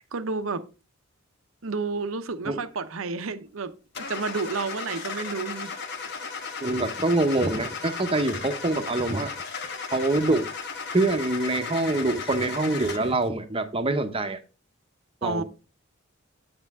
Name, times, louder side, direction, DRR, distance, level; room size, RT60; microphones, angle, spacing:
voice 1, 0.1-0.6 1.6-5.7 6.2-6.3 15.2-15.4, right 4 dB, 85° right, 0.8 m, -31 dB
Car / Engine starting, 3.9-13.2, left 5 dB, 55° left, 1.2 m, -35 dB
voice 2, 6.6-9.3 9.9-10.5 10.9-14.4 15.2-15.4, right 2 dB, 25° right, 0.9 m, -25 dB
8.1 x 7.9 x 3.6 m
head